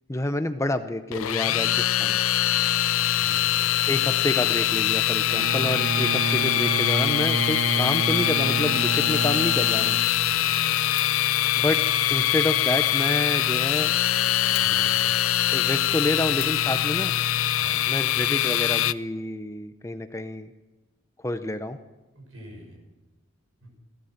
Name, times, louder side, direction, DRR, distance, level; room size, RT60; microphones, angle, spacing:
voice 1, 0.1-2.2 3.9-10.0 11.6-11.8 12.1-13.9 15.5-17.2 17.9-20.5 21.2-21.8, left 1 dB, 15° left, 10 dB, 0.6 m, -28 dB
sound 1, 1.1-18.9, left 13 dB, 80° left, 0.5 m, -23 dB
voice 2, 2.9-3.6 10.2-10.7 14.6-15.0 17.6-17.9 22.1-22.8 23.6-23.7, equal, 75° right, 1 dB, 7.1 m, -46 dB
Bowed string instrument, 5.3-10.7, right 5 dB, 50° right, 0.4 m, -31 dB
Fire, 10.9-11.2 12.0-13.8 14.1-14.2 14.5-14.7 16.3-16.7 18.1-19.0 19.2-19.3 19.5-19.6, left 11 dB, 50° left, 2.9 m, -41 dB
16.5 x 13.0 x 6.6 m, 1.2 s
head